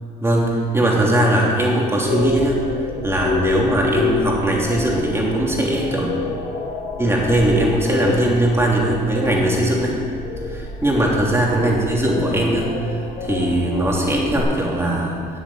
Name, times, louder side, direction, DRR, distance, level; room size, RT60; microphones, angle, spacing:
voice 1, 0.2-2.6 3.0-6.1 7.0-10.0 10.8-15.2, right 1 dB, 15° right, -3 dB, 3.2 m, -19 dB
sound 1, 2.1-14.4, left 4 dB, 70° left, 1.8 m, -28 dB
12.5 x 7.3 x 9.0 m, 2.4 s
cardioid pair, 110°, 17 cm